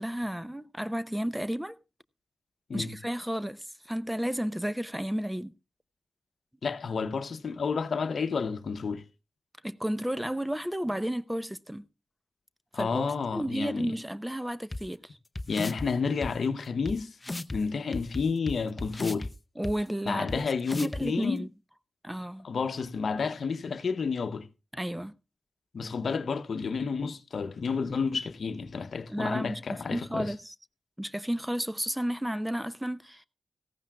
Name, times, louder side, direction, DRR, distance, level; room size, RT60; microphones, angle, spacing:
voice 1, 0.0-1.8 2.7-5.5 9.6-11.9 12.7-13.1 13.3-15.2 19.6-20.3 20.8-21.5 22.0-22.5 24.7-25.1 29.1-30.5 31.0-33.3, equal, 5° right, 0.7 m, -32 dB
voice 2, 6.6-9.0 12.7-13.9 15.5-17.2 17.5-19.3 20.1-21.4 22.4-24.5 25.7-30.3, left 5 dB, 70° left, 0.8 m, -30 dB
sound 1, 14.7-14.8 15.3-15.9 16.2-16.3 16.8-16.9 17.2-17.6 17.9-19.3 19.6-19.7 20.3-20.4 20.6-21.0, left 2 dB, 30° left, 0.6 m, -34 dB
18.0 x 14.5 x 2.3 m
cardioid pair, 40°, 0 cm